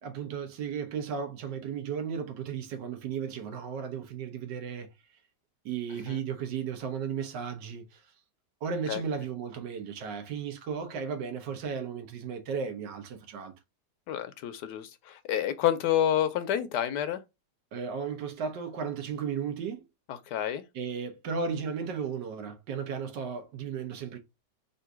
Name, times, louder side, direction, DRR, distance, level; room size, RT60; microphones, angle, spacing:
voice 1, 0.0-4.9 5.6-8.0 8.6-13.5 17.7-19.8 20.7-24.2, right 6 dB, 75° right, 1.5 m, -35 dB
voice 2, 14.1-17.2 20.1-20.6, left 10 dB, 75° left, 1.1 m, -29 dB
3.8 x 2.6 x 4.5 m
omnidirectional pair, 1.9 m